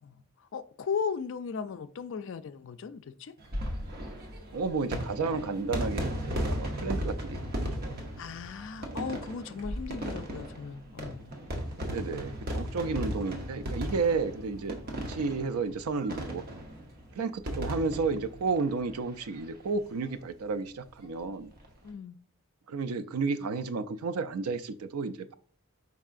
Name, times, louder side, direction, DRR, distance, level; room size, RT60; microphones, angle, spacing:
voice 1, 0.0-3.3 8.2-11.3 21.8-22.2, left 6 dB, 60° left, 11 dB, 0.3 m, -37 dB
sound 1, 3.4-19.4 19.7-19.8 20.0-20.1 21.4-21.7, equal, 45° right, 0.8 m, -36 dB
voice 2, 4.5-7.4 7.8-8.0 11.8-16.4 17.1-21.5 22.7-25.3, right 4 dB, 90° right, 12 dB, 0.4 m, -32 dB
4.7 x 4.5 x 2.4 m, 0.43 s
head